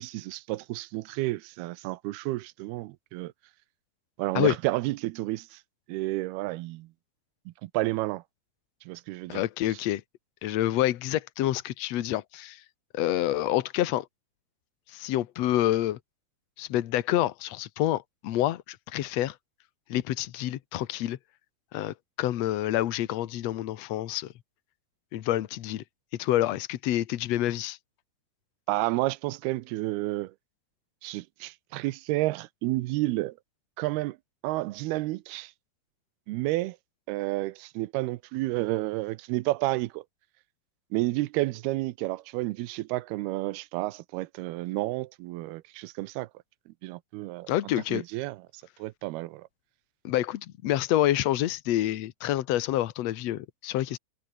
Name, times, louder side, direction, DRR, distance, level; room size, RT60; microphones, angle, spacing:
voice 1, 0.0-3.3 4.2-5.6 5.9-6.9 7.6-8.2 8.9-9.4 28.7-30.3 31.0-33.4 33.8-34.2 34.4-35.5 36.3-36.8 37.1-40.0 40.9-46.3 46.8-47.5 47.9-48.4 48.8-49.5, right 19 dB, 85° right, 2.6 m, -30 dB
voice 2, 9.3-10.0 10.4-12.6 12.9-14.0 14.9-16.0 16.6-19.3 19.9-21.2 21.7-24.3 25.1-25.8 26.2-27.8 47.5-48.0 50.0-54.0, left 13 dB, 85° left, 1.4 m, -27 dB
omnidirectional pair, 4.6 m